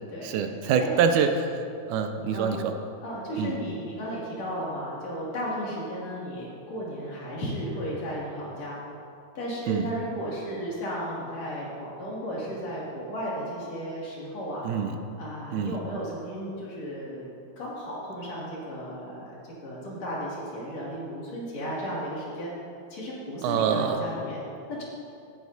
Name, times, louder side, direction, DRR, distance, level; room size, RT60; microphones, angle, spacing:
voice 1, 0.2-2.7 3.4-3.6 9.7-9.9 14.6-15.0 15.5-15.8 23.4-24.0, right 7 dB, 80° right, 7 dB, 2.1 m, -25 dB
voice 2, 3.0-8.8 9.3-14.6 15.2-19.2 19.6-22.5 22.9-24.4, equal, 60° left, -6 dB, 3.5 m, -34 dB
15.0 x 11.0 x 2.7 m, 2.5 s
omnidirectional pair, 3.5 m